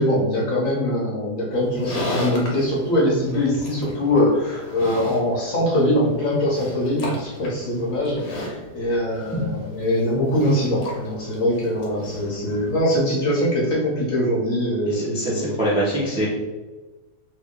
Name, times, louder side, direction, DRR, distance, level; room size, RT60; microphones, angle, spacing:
voice 1, 0.0-15.5, left 1 dB, 60° left, -4 dB, 1.1 m, -22 dB
Livestock farm animals working animals, 1.5-12.8, left 2 dB, 85° left, 1.5 m, -35 dB
voice 2, 14.9-16.3, right 1 dB, 5° right, -7 dB, 0.6 m, -24 dB
3.0 x 2.7 x 3.6 m, 1.2 s
omnidirectional pair, 1.8 m